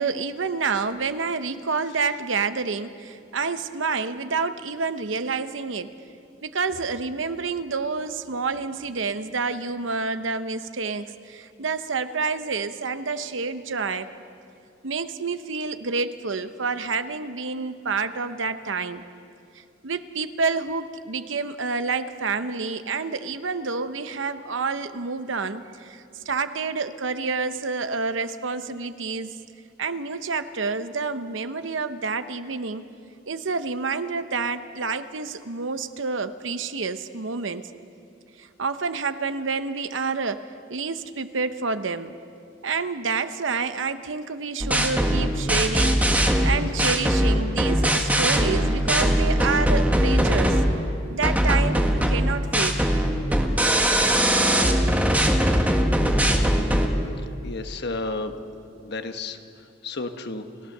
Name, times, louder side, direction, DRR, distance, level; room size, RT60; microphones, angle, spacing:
voice 1, 0.0-5.9 6.4-14.1 14.8-19.0 19.8-29.3 29.8-32.9 33.3-37.7 38.4-42.1 42.6-46.1 46.4-50.6 51.1-52.8, right 4 dB, 75° right, 11 dB, 0.9 m, -28 dB
sound 1, 44.6-50.8 51.2-56.9, equal, 10° right, 1.6 m, -21 dB
voice 2, 57.4-58.3 58.8-59.4 59.8-60.4, left 3 dB, 60° left, 7 dB, 1.3 m, -31 dB
30.0 x 16.0 x 6.7 m, 2.5 s
head